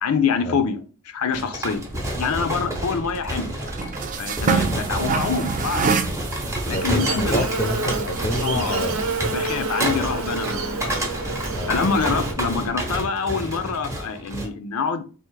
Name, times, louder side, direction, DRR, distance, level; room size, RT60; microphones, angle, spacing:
voice 1, 0.0-1.8 2.2-3.5 4.2-5.9 6.6-7.3 8.4-8.8 9.3-10.9 11.7-15.0, left 5 dB, 85° left, 0.5 m, -25 dB
sound 1, 1.3-14.5, right 1 dB, 15° right, 0.7 m, -29 dB
sound 2, 1.8-13.0, right 5 dB, 35° right, 0.3 m, -30 dB
voice 2, 6.7-9.0 11.5-11.8, left 2 dB, 30° left, 0.5 m, -28 dB
Buzz, 6.7-12.3, right 4 dB, 65° right, 0.7 m, -29 dB
3.5 x 2.5 x 4.5 m
head